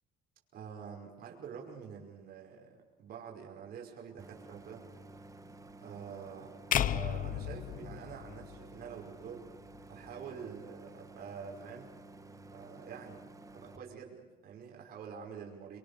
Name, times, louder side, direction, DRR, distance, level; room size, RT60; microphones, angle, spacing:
voice 1, 0.5-4.8 5.8-9.5 9.9-11.9 12.5-13.2 13.5-15.8, right 7 dB, 65° right, 0 dB, 5.4 m, -47 dB
Idling, 4.2-13.8, right 2 dB, 20° right, 1.6 m, -52 dB
sound 1, 6.7-9.0, left 10 dB, 55° left, 0.8 m, -33 dB
27.0 x 23.0 x 6.9 m, 1.3 s
cardioid pair, 110°, 17 cm